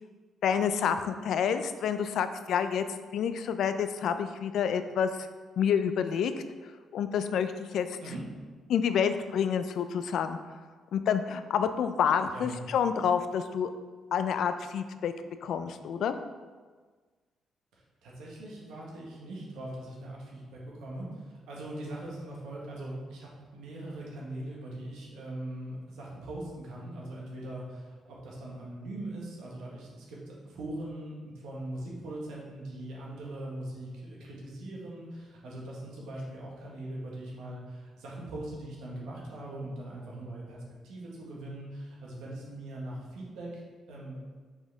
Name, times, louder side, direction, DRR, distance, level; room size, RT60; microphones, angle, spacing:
voice 1, 0.4-2.9 3.1-5.1 5.6-6.3 6.9-7.9 8.7-10.4 10.9-13.7 14.1-15.1 15.4-16.2, left 7 dB, 70° left, 10 dB, 0.4 m, -28 dB
voice 2, 17.7-43.6 43.9-44.2, right 1 dB, 85° right, -4 dB, 1.6 m, -41 dB
5.5 x 5.3 x 3.5 m, 1.4 s
cardioid pair, 90°, 0 cm